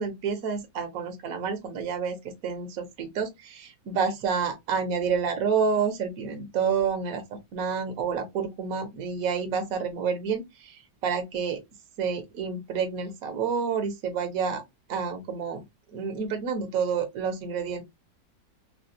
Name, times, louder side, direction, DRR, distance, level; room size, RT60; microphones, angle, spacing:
voice 1, 0.0-2.2 2.4-11.6 12.0-14.6 14.9-15.6 15.9-17.8, right 6 dB, 55° right, 1.1 m, -29 dB
3.4 x 2.3 x 2.6 m
omnidirectional pair, 2.1 m